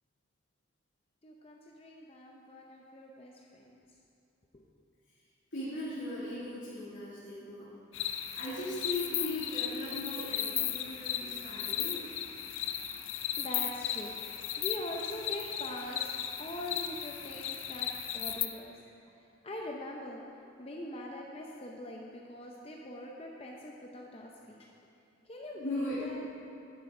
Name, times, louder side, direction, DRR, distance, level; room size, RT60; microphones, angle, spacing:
voice 1, 1.2-3.8 4.5-4.7 12.9-14.2 14.6-18.8 19.1-24.7 25.2-26.2, left 1 dB, 30° left, -1 dB, 0.6 m, -43 dB
voice 2, 5.5-7.7 8.3-12.0 25.5-26.1, left 1 dB, 70° left, -11 dB, 2.6 m, -38 dB
sound 1, 7.9-18.5, left 10 dB, 85° left, 0.6 m, -36 dB
11.0 x 9.5 x 3.8 m, 2.7 s
head